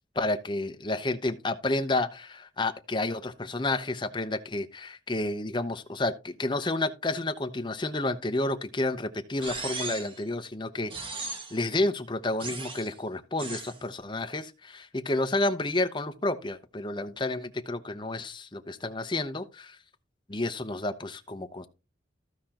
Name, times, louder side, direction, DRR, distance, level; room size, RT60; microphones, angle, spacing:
voice 1, 0.2-10.9 11.5-19.8 20.3-21.7, left 2 dB, 25° left, 0.8 m, -30 dB
sound 1, 9.4-10.2 10.9-11.7 12.4-12.9 13.4-13.8, right 3 dB, 25° right, 1.2 m, -37 dB
15.0 x 5.1 x 2.9 m
head